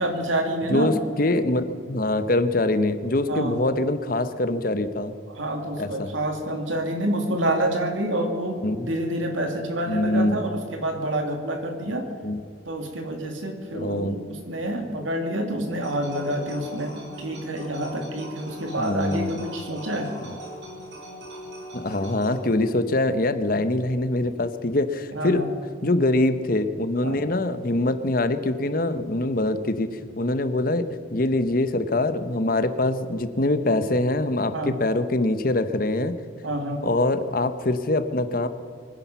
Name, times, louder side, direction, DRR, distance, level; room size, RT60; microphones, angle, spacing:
voice 1, 0.0-0.9 3.3-3.6 5.3-8.6 8.8-12.0 12.6-20.1 25.1-25.5 27.0-27.2 34.5-34.8 36.4-36.8, right 1 dB, 85° right, 3 dB, 2.7 m, -28 dB
voice 2, 0.7-5.1 5.8-6.1 8.6-8.9 9.9-10.4 12.2-12.4 13.7-14.2 18.8-19.4 21.7-25.4 25.8-30.8 31.1-36.1 36.8-38.5, left 2 dB, 45° left, 11 dB, 0.9 m, -24 dB
sound 1, 15.8-22.4, equal, 65° right, 4.4 m, -40 dB
24.0 x 10.0 x 5.7 m, 2.3 s
head